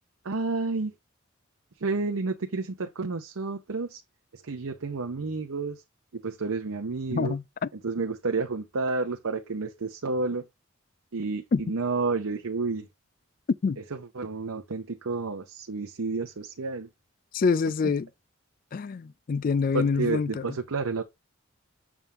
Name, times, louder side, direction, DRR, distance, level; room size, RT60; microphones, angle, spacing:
voice 1, 0.2-0.9 1.8-4.0 4.3-5.8 6.1-7.4 7.8-10.5 11.1-12.9 14.1-16.9 17.8-17.9 19.7-21.0, right 3 dB, 80° right, 0.7 m, -30 dB
voice 2, 7.1-7.7 11.5-11.6 13.6-13.8 17.3-18.1 18.7-20.6, left 5 dB, 40° left, 0.3 m, -26 dB
7.2 x 3.6 x 4.2 m
head